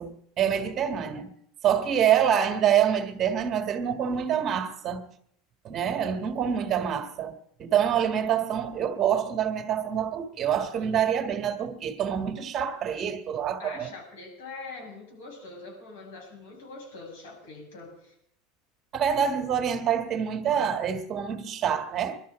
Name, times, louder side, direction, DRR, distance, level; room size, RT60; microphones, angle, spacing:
voice 1, 0.0-1.3 1.6-5.1 5.6-13.9 18.9-22.2, right 8 dB, 35° right, 1.6 m, -26 dB
voice 2, 13.6-18.1, left 3 dB, 85° left, 6.9 m, -43 dB
21.5 x 12.5 x 5.1 m
supercardioid pair, 125°, 0 cm